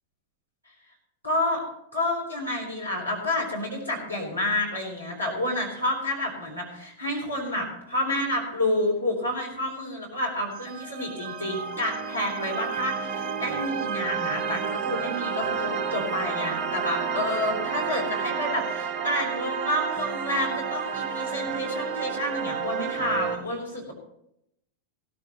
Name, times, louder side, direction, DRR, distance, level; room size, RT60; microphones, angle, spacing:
voice 1, 1.2-1.6 1.9-23.9, left 1 dB, 85° left, -1 dB, 4.0 m, -29 dB
sound 1, 10.5-23.4, right 6 dB, 35° right, 1.0 m, -30 dB
16.0 x 13.5 x 3.0 m, 0.76 s
figure-of-eight pair, 90°, 0 cm